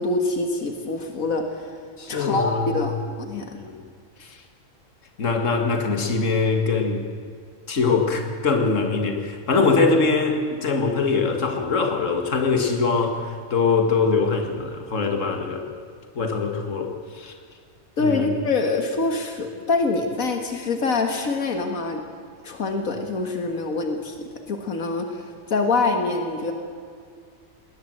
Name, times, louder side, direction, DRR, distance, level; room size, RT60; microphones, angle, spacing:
voice 1, 0.0-1.7 2.1-3.6 18.0-22.0 22.4-26.5, left 3 dB, 85° left, 4 dB, 2.1 m, -25 dB
voice 2, 2.0-2.8 3.6-3.8 4.2-4.4 5.2-7.1 7.7-15.7 16.2-17.3 18.0-18.3, left 4 dB, 65° left, 4 dB, 2.2 m, -23 dB
19.5 x 19.5 x 7.7 m, 2.2 s
omnidirectional pair, 1.4 m